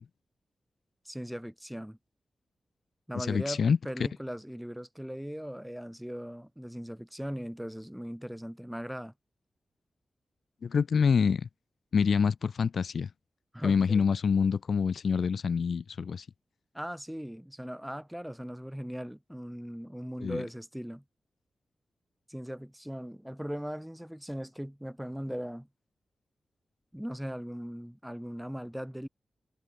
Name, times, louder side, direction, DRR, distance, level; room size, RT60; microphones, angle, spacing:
voice 1, 1.0-2.0 3.1-9.1 13.5-14.1 16.7-21.0 22.3-25.7 26.9-29.1, equal, 5° right, 4.8 m, -39 dB
voice 2, 3.1-3.8 10.6-11.5 11.9-13.1 13.6-16.3 20.2-20.4, left 6 dB, 70° left, 1.4 m, -26 dB
wide cardioid pair, 85°, 0 cm